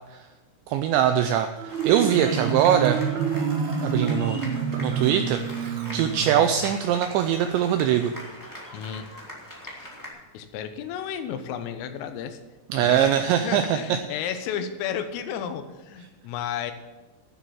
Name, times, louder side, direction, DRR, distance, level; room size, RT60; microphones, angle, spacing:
voice 1, 0.7-3.0 3.8-4.4 4.8-8.1 12.7-14.0, right 10 dB, 90° right, 8 dB, 2.5 m, -22 dB
Marimba xylophone, 1.6-6.7, right 6 dB, 70° right, 2.5 m, -28 dB
sound 1, 1.7-10.1, equal, 15° left, 0.6 m, -41 dB
voice 2, 8.7-9.1 9.8-9.9 10.3-12.4 12.8-16.7, left 8 dB, 85° left, 8 dB, 3.5 m, -33 dB
12.5 x 7.4 x 7.2 m, 1.1 s
omnidirectional pair, 5.8 m